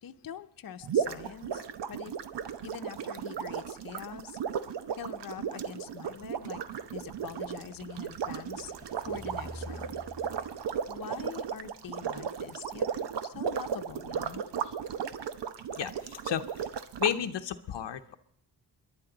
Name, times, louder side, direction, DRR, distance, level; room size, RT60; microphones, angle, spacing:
voice 1, 0.0-2.2 2.6-4.4 5.0-6.6 6.9-8.7 9.0-10.0 10.9-12.9 13.2-14.4, left 8 dB, 55° left, 7 dB, 0.8 m, -44 dB
sound 1, 0.8-17.2, right 7 dB, 85° right, 0.9 m, -35 dB
sound 2, 6.1-12.3, equal, 20° right, 4.1 m, -51 dB
voice 2, 15.8-16.5 17.0-18.1, left 9 dB, 85° left, 8 dB, 0.8 m, -32 dB
27.5 x 11.0 x 3.9 m, 0.63 s
wide cardioid pair, 125°, 41 cm